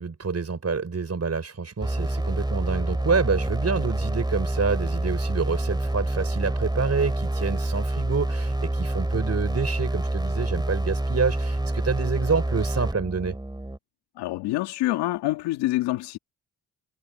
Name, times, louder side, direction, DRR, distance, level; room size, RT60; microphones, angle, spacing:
voice 1, 0.0-13.4, right 5 dB, 40° right, 5.7 m, -27 dB
sound 1, 1.8-13.8, right 1 dB, 10° right, 3.4 m, -27 dB
voice 2, 14.2-16.2, left 17 dB, 85° left, 2.2 m, -26 dB
supercardioid pair, 55°, 40 cm